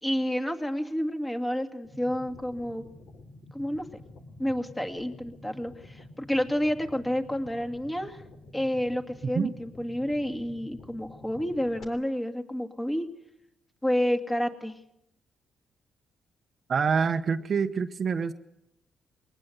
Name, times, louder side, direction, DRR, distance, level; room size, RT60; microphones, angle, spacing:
voice 1, 0.0-2.8 3.5-3.8 4.4-8.2 8.5-13.1 13.8-14.7, equal, 10° left, 5 dB, 2.4 m, -29 dB
sound 1, 1.8-11.8, left 2 dB, 65° left, 3.4 m, -49 dB
voice 2, 16.7-18.3, right 6 dB, 45° right, 8 dB, 1.0 m, -26 dB
22.0 x 19.5 x 8.1 m, 0.81 s
cardioid pair, 90°, 0 cm